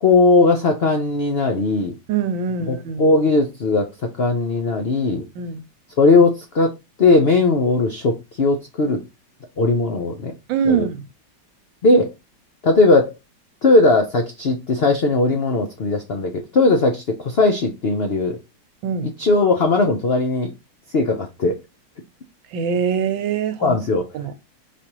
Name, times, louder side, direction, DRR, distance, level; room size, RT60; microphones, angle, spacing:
voice 1, 0.0-1.9 2.7-3.9 4.2-5.2 6.0-9.0 9.6-10.3 10.7-10.9 11.8-12.1 12.6-13.1 13.6-18.4 19.2-20.5 20.9-21.6 23.6-24.1, left 3 dB, 70° left, 0.5 m, -18 dB
voice 2, 2.1-3.1 5.4-5.6 10.5-11.0 18.8-19.1 22.5-23.8 24.1-24.3, right 7 dB, 90° right, 1.5 m, -23 dB
5.2 x 3.3 x 3.0 m
omnidirectional pair, 2.0 m